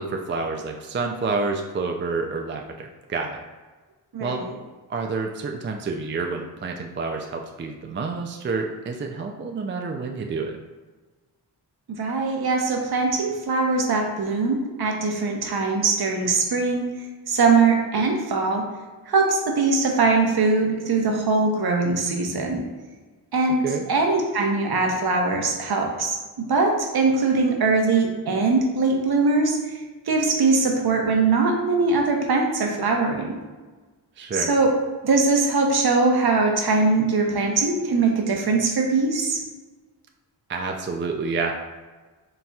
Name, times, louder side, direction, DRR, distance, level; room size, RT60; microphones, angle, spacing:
voice 1, 0.0-3.4 4.2-4.4 4.9-10.6 23.6-23.8 34.2-34.5 40.5-41.5, right 4 dB, 30° right, 3 dB, 0.4 m, -28 dB
voice 2, 4.1-4.6 11.9-16.9 17.3-18.7 19.1-22.6 23.3-29.8 30.1-33.4 34.4-34.7 35.0-39.4, right 3 dB, 60° right, 1 dB, 0.9 m, -21 dB
4.3 x 3.9 x 2.3 m, 1.3 s
cardioid pair, 55°, 43 cm